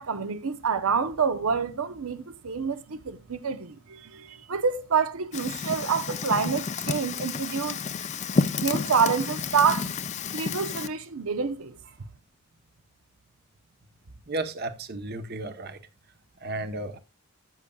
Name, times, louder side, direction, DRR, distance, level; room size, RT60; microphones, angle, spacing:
voice 1, 0.0-7.8 8.6-9.9 10.3-11.8, right 6 dB, 80° right, 0.8 m, -27 dB
Fire, 5.3-10.9, left 4 dB, 30° left, 0.5 m, -30 dB
voice 2, 14.3-15.8 16.4-17.0, right 2 dB, 45° right, 0.9 m, -33 dB
14.0 x 8.3 x 2.3 m
head